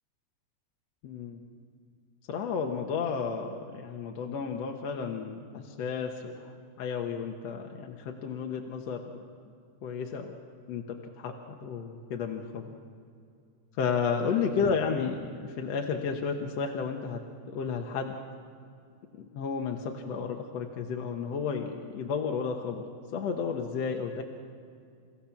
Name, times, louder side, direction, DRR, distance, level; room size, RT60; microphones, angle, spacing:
voice 1, 1.0-1.4 2.3-6.5 6.8-9.2 9.8-10.3 10.7-11.3 11.6-12.7 13.8-17.2 17.5-18.1 19.2-22.8 23.1-24.2, left 6 dB, 65° left, 2 dB, 2.2 m, -32 dB
30.0 x 15.5 x 5.9 m, 2.4 s
omnidirectional pair, 3.4 m